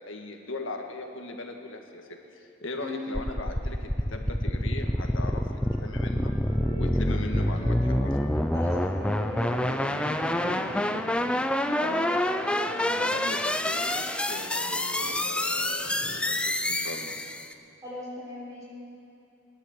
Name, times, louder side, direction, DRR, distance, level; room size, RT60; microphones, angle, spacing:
voice 1, 0.0-2.1 2.3-6.3 6.7-8.2 11.8-12.1 12.9-17.2, left 2 dB, 80° left, 3 dB, 1.7 m, -39 dB
sound 1, 3.1-17.5, left 1 dB, 5° left, 0.4 m, -27 dB
Wind instrument woodwind instrument, 4.5-8.3 8.6-12.9, right 2 dB, 85° right, 4.6 m, -48 dB
Thunder, 8.0-17.5, equal, 40° right, 1.3 m, -46 dB
voice 2, 8.5-11.3 11.6-13.1 17.8-18.6, left 1 dB, 15° right, -6 dB, 4.5 m, -38 dB
17.5 x 11.5 x 7.3 m, 2.8 s
head